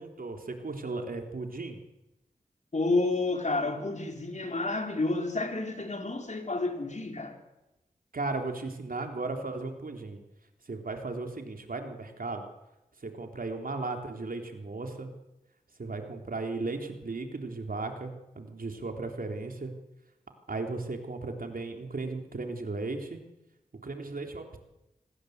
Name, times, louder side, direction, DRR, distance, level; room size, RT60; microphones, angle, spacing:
voice 1, 0.0-1.8 8.1-10.2 10.7-12.4 13.0-15.1 15.8-19.7 20.5-23.2 23.8-24.6, right 3 dB, 70° right, 4 dB, 3.7 m, -36 dB
voice 2, 2.7-7.4, left 2 dB, 50° left, 4 dB, 4.4 m, -30 dB
27.0 x 19.0 x 8.1 m, 0.95 s
cardioid pair, 50°, 15 cm